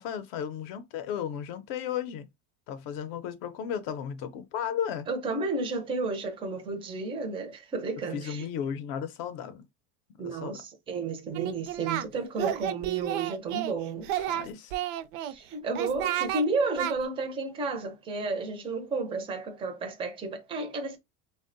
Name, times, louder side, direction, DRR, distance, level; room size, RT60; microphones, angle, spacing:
voice 1, 0.0-2.3 2.7-5.1 8.1-9.6 10.2-10.6 14.2-14.7, left 8 dB, 55° left, 0.5 m, -34 dB
voice 2, 5.1-8.5 10.2-14.1 15.2-21.0, right 3 dB, 15° right, 0.4 m, -32 dB
Singing, 11.3-12.1 12.4-13.7 14.0-15.3 15.7-16.4 16.8-16.9, right 12 dB, 80° right, 0.5 m, -31 dB
3.5 x 2.1 x 2.5 m
cardioid pair, 160°, 37 cm